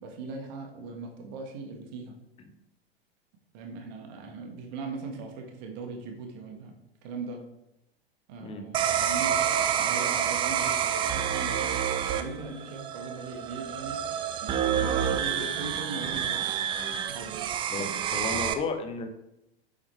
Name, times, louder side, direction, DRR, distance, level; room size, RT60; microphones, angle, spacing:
voice 1, 0.0-2.2 3.5-6.7 7.0-7.4 8.3-9.4 9.8-11.7 12.1-14.0 14.4-16.6 17.1-17.3, right 4 dB, 45° right, 2 dB, 1.6 m, -39 dB
sound 1, 8.7-18.5, right 9 dB, 15° right, 0.4 m, -28 dB
voice 2, 17.7-19.1, left 3 dB, 20° left, 7 dB, 1.1 m, -33 dB
8.3 x 7.3 x 3.3 m, 0.85 s
figure-of-eight pair, 95°, 31 cm